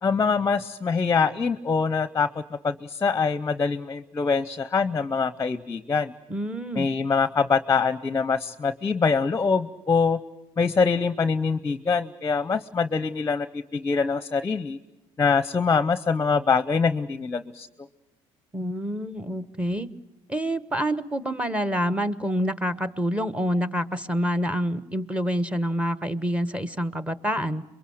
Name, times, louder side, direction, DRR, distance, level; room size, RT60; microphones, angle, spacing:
voice 1, 0.0-6.1 6.8-10.2 10.6-14.8 15.2-17.7, left 5 dB, 20° left, 14 dB, 0.8 m, -24 dB
voice 2, 6.3-6.9 18.5-19.9 20.3-27.6, equal, 10° right, 13 dB, 1.2 m, -27 dB
27.0 x 22.5 x 7.9 m, 1.0 s
supercardioid pair, 95°, 13 cm